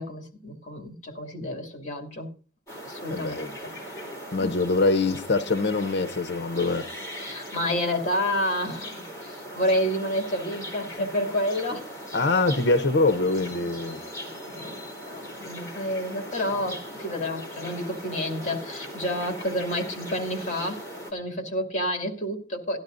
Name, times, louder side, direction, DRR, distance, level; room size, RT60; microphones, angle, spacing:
voice 1, 0.0-2.3 2.8-3.4 3.6-3.7 4.4-4.5 7.2-11.9 14.2-14.8 15.1-22.8, equal, 40° left, 2.2 m, -29 dB
sound 1, 2.7-21.1, equal, 15° left, 3.1 m, -39 dB
voice 2, 3.1-3.5 4.3-6.9 12.1-14.0, left 3 dB, 70° left, 0.7 m, -24 dB
18.0 x 12.0 x 2.5 m
head